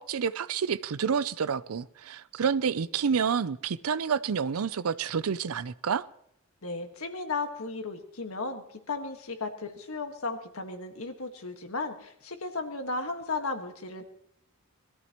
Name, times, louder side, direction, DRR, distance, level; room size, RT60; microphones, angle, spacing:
voice 1, 0.0-6.1, right 6 dB, 90° right, 0.5 m, -29 dB
voice 2, 6.6-14.0, left 3 dB, 75° left, 1.6 m, -35 dB
21.0 x 13.5 x 3.0 m
head